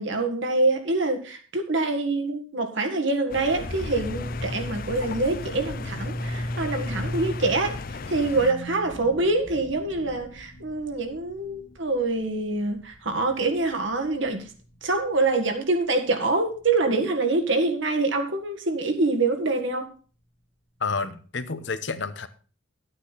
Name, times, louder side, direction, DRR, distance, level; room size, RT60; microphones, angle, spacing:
voice 1, 0.0-7.8 8.1-14.4 14.8-19.9, right 2 dB, 65° right, 4 dB, 1.7 m, -25 dB
sound 1, 3.3-8.5, left 4 dB, 45° left, 0.5 m, -36 dB
sound 2, 3.6-14.9, equal, 75° left, 2.1 m, -37 dB
voice 2, 20.8-22.3, left 4 dB, 60° left, 11 dB, 0.9 m, -30 dB
12.0 x 8.9 x 4.1 m, 0.39 s
head